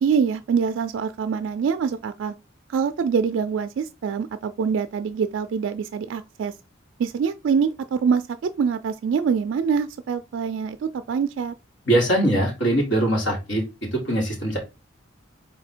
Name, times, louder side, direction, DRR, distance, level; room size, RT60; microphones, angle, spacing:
voice 1, 0.0-2.3 2.7-6.5 7.0-11.5, right 6 dB, 70° right, 0.3 m, -24 dB
voice 2, 11.9-13.6 13.9-14.6, right 1 dB, 65° left, 2.0 m, -21 dB
4.0 x 2.7 x 4.4 m
head